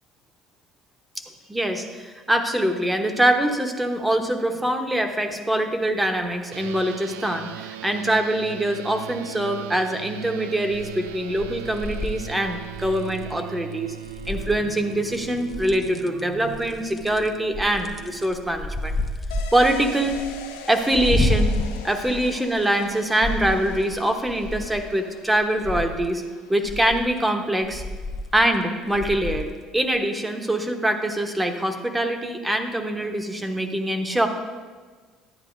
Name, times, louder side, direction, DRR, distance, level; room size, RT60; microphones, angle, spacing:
voice 1, 1.5-13.9 14.3-19.0 19.5-20.2 20.6-21.5 21.8-26.2 26.5-27.8 28.3-34.3, right 1 dB, 10° right, 5 dB, 1.1 m, -24 dB
sound 1, 6.5-18.4, right 13 dB, 85° right, 0.3 m, -39 dB
sound 2, 10.7-11.1 11.4-13.3 14.0-14.8 15.1-16.2 16.5-22.9 23.2-24.9 25.3-26.1 26.7-27.2 27.6-28.6 28.9-29.5 29.9-30.0, left 2 dB, 30° left, 0.7 m, -30 dB
sound 3, 19.3-28.7 29.0-29.1, left 5 dB, 90° left, 0.7 m, -43 dB
11.0 x 9.4 x 2.6 m, 1.4 s
hypercardioid pair, 75°, 0 cm